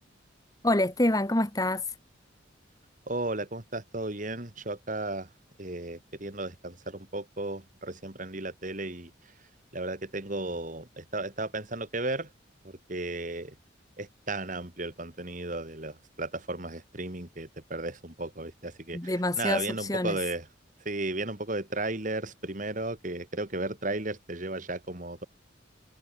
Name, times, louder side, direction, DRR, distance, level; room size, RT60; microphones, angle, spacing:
voice 1, 0.6-1.8 18.9-19.6 19.9-20.2, left 1 dB, 20° left, 1.6 m, -26 dB
voice 2, 3.1-5.3 5.6-12.3 12.6-13.5 14.0-20.5 20.8-25.3, right 2 dB, 40° right, 2.4 m, -35 dB
head